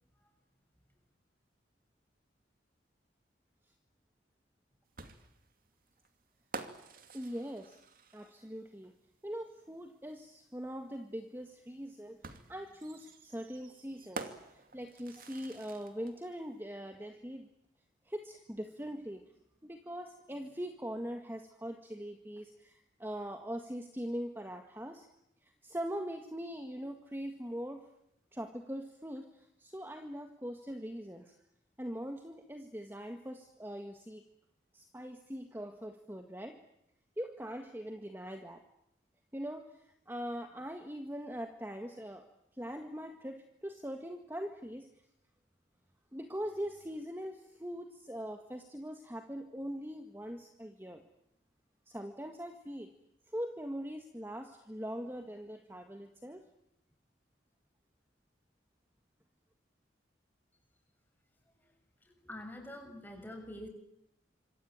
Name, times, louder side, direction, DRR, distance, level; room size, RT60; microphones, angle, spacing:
sound 1, 5.0-8.6 10.1-10.2 12.2-16.1, right 3 dB, 50° right, 2.6 m, -48 dB
voice 1, 7.1-7.8 8.1-8.9 9.2-12.2 12.5-17.5 18.0-19.2 19.6-25.1 25.4-27.9 28.3-31.4 31.8-34.3 34.7-36.6 37.2-38.6 39.3-42.3 42.5-44.9 46.1-51.1 51.8-52.9 53.3-56.5, equal, 10° right, 5 dB, 1.8 m, -42 dB
voice 2, 62.2-63.7, left 1 dB, 10° left, 4 dB, 6.5 m, -45 dB
27.0 x 24.0 x 9.0 m, 0.78 s
head